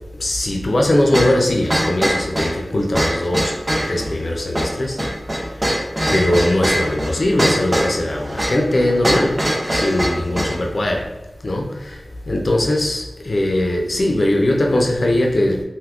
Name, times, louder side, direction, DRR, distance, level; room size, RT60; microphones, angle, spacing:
voice 1, 0.2-3.5 3.8-5.0 5.5-5.6 6.1-11.1 11.4-15.6, left 1 dB, 60° left, 1 dB, 0.4 m, -20 dB
sound 1, 1.1-10.6, equal, 25° right, 0.6 m, -22 dB
3.5 x 2.6 x 2.3 m, 1.1 s
wide cardioid pair, 85°, 0 cm